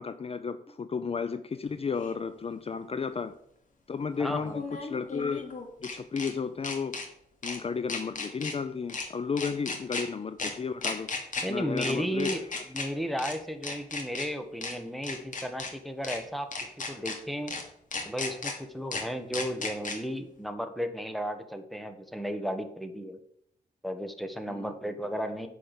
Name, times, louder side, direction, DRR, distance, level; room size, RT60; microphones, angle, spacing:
voice 1, 0.0-3.4 3.9-5.5 5.8-7.0 7.4-11.1 11.5-12.6 24.5-24.8, left 5 dB, 35° left, 12 dB, 0.6 m, -33 dB
sound 1, 2.0-2.1 4.5-6.3 6.6-7.1 7.4-7.6 7.9-8.5 8.9-9.1 9.4-10.0 10.4-10.5 10.8-11.4 11.8-11.9 12.2-12.9 13.2-13.3 13.6-14.3 14.6-14.7 15.0-15.7 16.0-16.2 16.5-17.2 17.5-17.6 17.9-18.5 18.9-19.0 19.3-20.0, left 4 dB, 50° left, 2.6 m, -34 dB
voice 2, 4.2-4.6 11.4-16.5 16.9-17.5 18.0-23.2 23.8-25.5, equal, ahead, 8 dB, 1.5 m, -34 dB
10.0 x 5.0 x 8.2 m, 0.73 s
cardioid pair, 90°, 17 cm